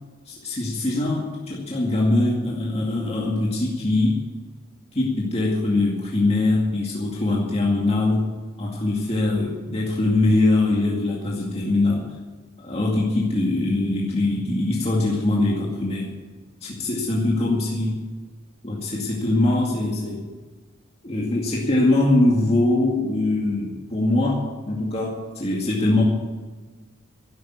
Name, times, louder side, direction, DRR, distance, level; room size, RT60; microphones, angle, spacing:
voice 1, 0.3-4.3 4.9-8.3 8.6-12.1 12.6-16.1 16.6-18.0 18.6-20.3 21.0-26.0, left 2 dB, 30° left, -3 dB, 2.2 m, -22 dB
12.0 x 12.0 x 8.4 m, 1.4 s
head